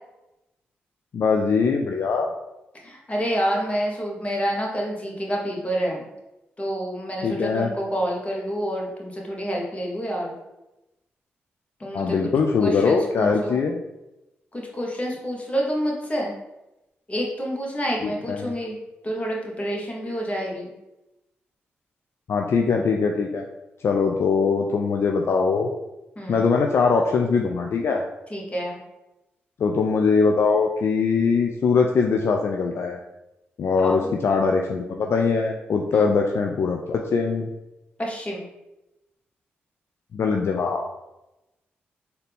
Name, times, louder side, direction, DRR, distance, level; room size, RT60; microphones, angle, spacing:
voice 1, 1.1-2.3 7.2-7.7 11.9-13.8 18.0-18.5 22.3-23.4 23.8-25.7 26.3-28.0 29.6-33.0 33.6-37.5 40.1-40.9, left 5 dB, 60° left, 2 dB, 0.4 m, -22 dB
voice 2, 2.8-6.0 6.6-10.3 11.8-12.2 12.6-13.6 14.5-16.3 17.1-18.8 19.0-20.7 26.2-26.5 28.3-28.8 33.8-34.1 35.9-36.1 38.0-38.4, equal, 25° left, -2 dB, 1.4 m, -28 dB
4.1 x 2.7 x 3.4 m, 0.96 s
supercardioid pair, 45°, 5 cm